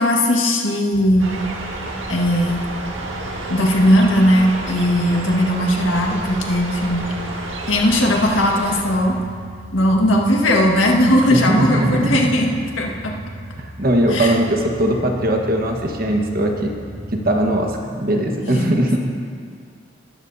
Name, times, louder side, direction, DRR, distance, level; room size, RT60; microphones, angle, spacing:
voice 1, 0.0-1.3 2.1-2.6 3.5-7.1 7.7-9.1 9.7-13.1 14.1-14.3 18.4-18.7, equal, 85° left, 0 dB, 1.7 m, -18 dB
sound 1, 0.9-17.5, right 1 dB, 35° left, 2.8 m, -36 dB
sound 2, 1.2-8.8, right 2 dB, 85° right, 1.7 m, -31 dB
voice 2, 11.3-12.3 13.6-16.7 17.1-19.0, right 1 dB, 50° right, 2 dB, 1.4 m, -20 dB
19.5 x 12.5 x 2.8 m, 2.1 s
head